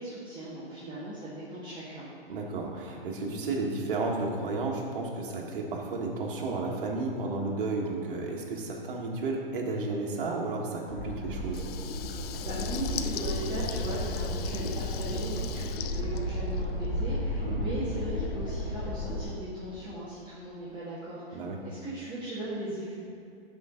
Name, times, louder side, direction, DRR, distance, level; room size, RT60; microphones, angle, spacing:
voice 1, 0.0-2.1 12.4-22.9, right 1 dB, 15° right, -11 dB, 2.0 m, -38 dB
voice 2, 2.3-11.6 17.4-17.6 21.3-21.6, right 3 dB, 60° right, -1 dB, 1.8 m, -32 dB
sound 1, 10.9-19.2, left 1 dB, 85° left, 1.6 m, -33 dB
Water tap faucet / Liquid, 11.4-17.0, left 11 dB, 40° left, 0.4 m, -42 dB
11.5 x 5.2 x 3.8 m, 2.6 s
hypercardioid pair, 120°, 30 cm